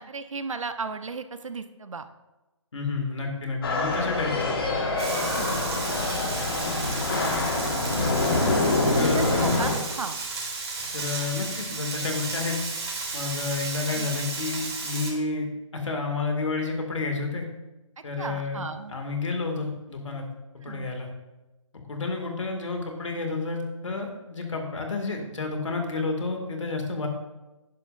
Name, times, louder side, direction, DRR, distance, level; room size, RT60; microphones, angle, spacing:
voice 1, 0.0-2.1 5.3-5.7 8.9-10.2 13.9-14.1 18.2-19.0 20.6-20.9, right 4 dB, 75° right, 10 dB, 0.9 m, -35 dB
voice 2, 2.7-4.7 8.4-9.4 10.9-12.6 13.1-17.4 18.0-18.6 18.9-20.3 20.6-21.1 21.7-27.1, left 3 dB, 65° left, 3 dB, 2.3 m, -30 dB
sound 1, 3.6-9.8, left 2 dB, 45° left, 1.7 m, -25 dB
Frying (food), 5.0-15.1, right 3 dB, 50° right, 3.1 m, -33 dB
11.5 x 10.5 x 2.6 m, 1.1 s
figure-of-eight pair, 160°, 17 cm